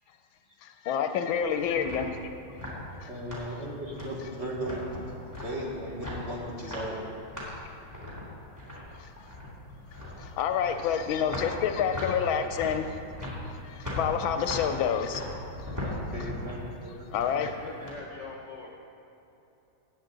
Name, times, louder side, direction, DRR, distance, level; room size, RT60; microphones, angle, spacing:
voice 1, 0.6-2.2 3.0-3.1 9.0-9.1 10.2-13.0 13.6-15.3 15.6-15.8 17.1-17.5, left 7 dB, 75° left, 7 dB, 1.3 m, -28 dB
sound 1, 1.3-17.9, left 1 dB, 10° right, 2.3 m, -39 dB
voice 2, 3.1-4.8 5.4-7.0 8.1-8.2 16.1-17.5, right 1 dB, 35° right, -3 dB, 1.5 m, -37 dB
voice 3, 17.4-18.7, left 3 dB, 50° left, -2 dB, 0.9 m, -42 dB
15.0 x 8.6 x 3.9 m, 2.9 s
omnidirectional pair, 2.3 m